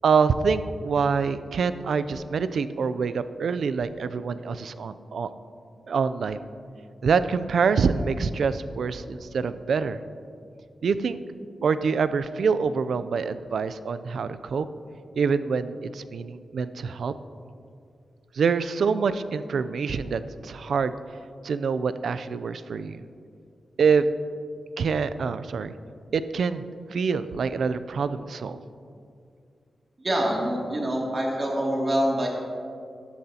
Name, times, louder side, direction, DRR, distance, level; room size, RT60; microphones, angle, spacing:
voice 1, 0.0-5.3 5.9-6.4 7.0-10.0 10.8-11.2 11.6-14.7 15.2-17.1 18.3-21.0 21.4-23.0 23.8-24.1 24.8-25.7 26.1-26.6 26.9-28.6, right 5 dB, 80° right, 13 dB, 0.4 m, -25 dB
voice 2, 30.0-32.3, equal, 40° right, -2 dB, 2.5 m, -25 dB
14.5 x 11.5 x 2.8 m, 2.4 s
cardioid pair, 85°, 0 cm